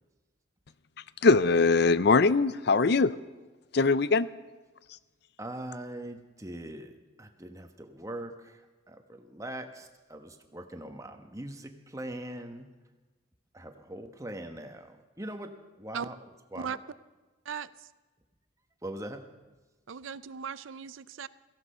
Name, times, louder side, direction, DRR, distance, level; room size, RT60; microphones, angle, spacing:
voice 1, 1.2-3.1 3.7-4.3, left 4 dB, 55° left, 16 dB, 0.5 m, -21 dB
voice 2, 5.4-12.7 13.5-15.5 15.8-16.8 18.8-19.2, right 1 dB, 15° right, 6 dB, 1.2 m, -42 dB
voice 3, 19.9-21.3, right 7 dB, 90° right, 16 dB, 0.5 m, -37 dB
17.0 x 15.0 x 5.6 m, 1.2 s
head